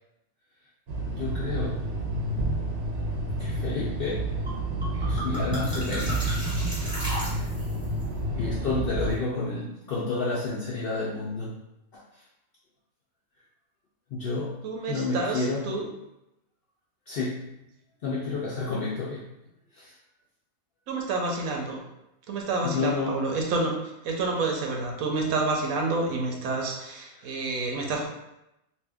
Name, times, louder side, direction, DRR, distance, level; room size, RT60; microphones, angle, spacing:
sound 1, 0.9-9.1, right 1 dB, 60° right, 0.8 m, -30 dB
voice 1, 1.1-1.8 3.4-4.3 4.9-6.3 7.3-7.5 8.3-11.5 11.9-12.0 14.1-14.6 14.9-15.8 17.1-17.4 18.0-19.3 19.7-19.9 22.6-23.3, left 3 dB, 70° left, -5 dB, 0.5 m, -30 dB
sound 2, 4.5-4.6 4.8-7.8, equal, 5° right, 1.0 m, -34 dB
voice 2, 14.6-15.9 20.9-21.8 22.3-23.8 24.0-28.1, right 3 dB, 80° right, 1 dB, 1.1 m, -29 dB
2.6 x 2.5 x 3.4 m, 0.88 s
omnidirectional pair, 1.5 m